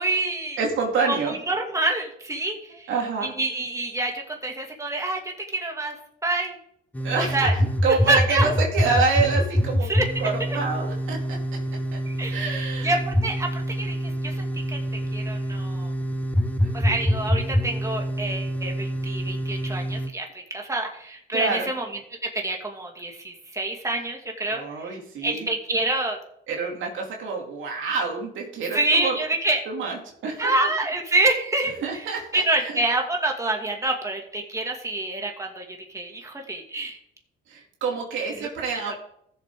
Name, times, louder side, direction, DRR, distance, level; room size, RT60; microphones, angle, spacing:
voice 1, 0.0-0.6 1.0-2.9 3.2-6.0 6.2-6.6 7.1-7.5 8.1-8.5 9.9-10.6 12.1-15.9 16.7-26.2 27.8-28.0 28.7-29.6 30.4-32.1 32.3-37.0 38.3-38.5 38.8-39.0, right 2 dB, 15° right, 1 dB, 2.3 m, -27 dB
voice 2, 0.6-1.4 2.9-3.3 7.0-9.9 10.2-11.4 11.9-12.0 12.3-13.0 16.6-16.7 21.3-21.7 24.5-25.5 26.5-29.2 29.7-30.5 31.8-32.7 37.5-39.0, right 4 dB, 80° right, -1 dB, 2.7 m, -27 dB
sound 1, 6.9-20.1, equal, 5° left, 0.9 m, -26 dB
15.0 x 7.2 x 3.8 m, 0.71 s
cardioid pair, 90°, 20 cm